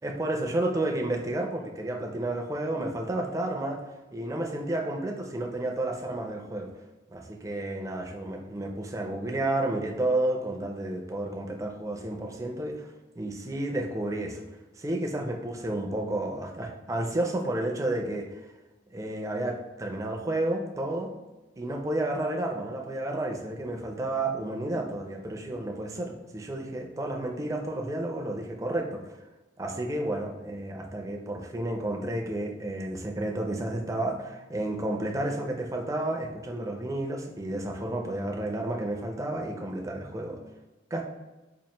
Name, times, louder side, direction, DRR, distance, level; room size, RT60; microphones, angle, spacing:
voice 1, 0.0-3.8 4.1-6.7 7.1-14.4 14.8-18.4 18.9-21.1 21.6-29.0 29.6-40.4 40.9-41.0, right 1 dB, 15° right, 2 dB, 0.4 m, -31 dB
4.4 x 2.4 x 2.9 m, 1.1 s
head